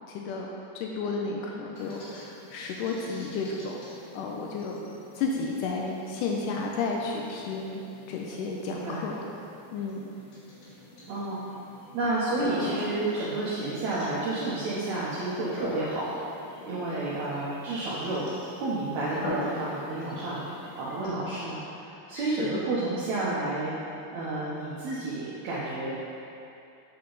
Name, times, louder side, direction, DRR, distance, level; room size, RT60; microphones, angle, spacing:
voice 1, 0.1-0.5 0.7-3.8 4.1-4.8 5.1-9.2 9.7-10.1 22.1-22.6, left 4 dB, 90° left, -1 dB, 1.8 m, -32 dB
sound 1, 1.7-21.0, left 1 dB, 60° left, 2.9 m, -42 dB
voice 2, 8.7-9.0 11.1-11.4 11.9-16.1 16.6-18.2 18.6-20.4 20.8-23.7 24.1-25.9, right 2 dB, 75° right, -8 dB, 1.7 m, -31 dB
8.1 x 6.7 x 3.9 m, 2.7 s
omnidirectional pair, 4.5 m